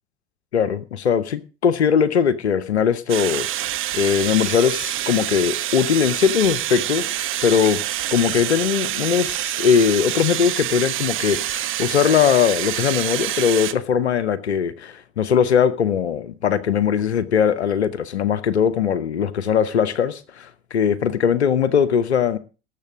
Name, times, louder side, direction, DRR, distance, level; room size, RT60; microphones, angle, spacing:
voice 1, 0.5-3.5 3.9-7.8 8.1-22.4, left 7 dB, 80° left, 0.9 m, -20 dB
sound 1, 3.1-13.7, right 13 dB, 40° right, 1.2 m, -26 dB
18.5 x 7.6 x 5.0 m
figure-of-eight pair, 75°, 33 cm